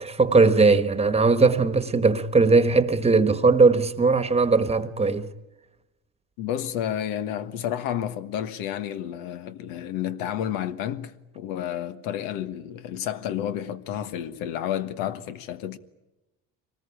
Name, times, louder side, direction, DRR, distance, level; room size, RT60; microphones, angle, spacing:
voice 1, 0.0-5.3, right 4 dB, 20° right, 1.3 m, -19 dB
voice 2, 6.4-15.8, left 10 dB, 85° left, 1.5 m, -31 dB
25.0 x 19.5 x 9.9 m
cardioid pair, 120°, 33 cm